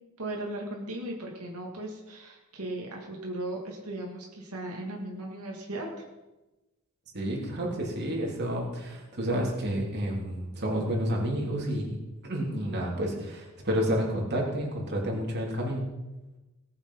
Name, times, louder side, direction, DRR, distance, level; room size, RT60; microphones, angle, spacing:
voice 1, 0.2-6.1, right 1 dB, 90° right, -1 dB, 2.2 m, -37 dB
voice 2, 7.1-12.0 12.3-15.8, equal, 50° right, -2 dB, 3.2 m, -30 dB
18.5 x 7.1 x 5.6 m, 1.1 s
head